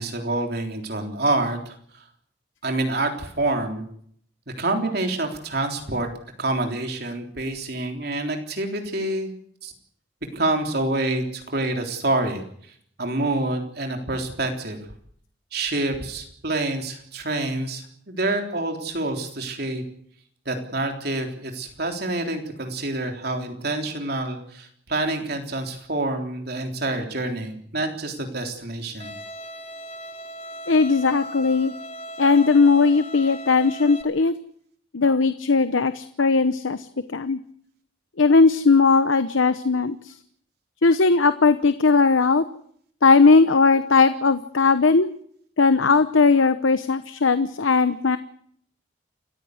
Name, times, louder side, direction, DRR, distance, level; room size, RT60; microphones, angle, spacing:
voice 1, 0.0-1.7 2.6-3.8 4.6-6.1 6.4-9.3 9.6-9.7 10.3-12.4 13.0-14.8 15.5-19.8 20.5-29.1, right 2 dB, 55° right, 4 dB, 3.6 m, -27 dB
Bowed string instrument, 29.0-34.0, equal, 30° left, 1.7 m, -38 dB
voice 2, 30.7-31.7 32.2-34.3 34.9-37.4 38.2-40.1 40.8-42.4 43.0-45.1 45.6-48.2, left 4 dB, 85° left, 12 dB, 0.9 m, -18 dB
28.5 x 15.0 x 7.9 m, 0.66 s
head